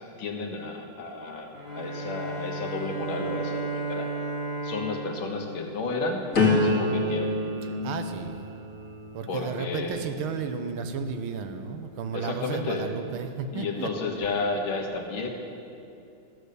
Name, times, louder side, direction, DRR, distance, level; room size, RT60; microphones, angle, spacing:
voice 1, 0.2-4.1 4.6-6.2 6.5-7.3 9.3-10.0 12.1-12.9 13.5-15.3, left 3 dB, 75° left, 2 dB, 2.0 m, -32 dB
Bowed string instrument, 1.5-6.3, right 3 dB, 10° right, 1.8 m, -34 dB
sound 1, 6.3-12.2 12.7-13.2, left 2 dB, 40° left, 2.2 m, -29 dB
voice 2, 7.8-8.5 9.1-13.9, right 6 dB, 80° right, 8 dB, 1.6 m, -33 dB
13.5 x 8.0 x 6.6 m, 2.6 s
omnidirectional pair, 2.3 m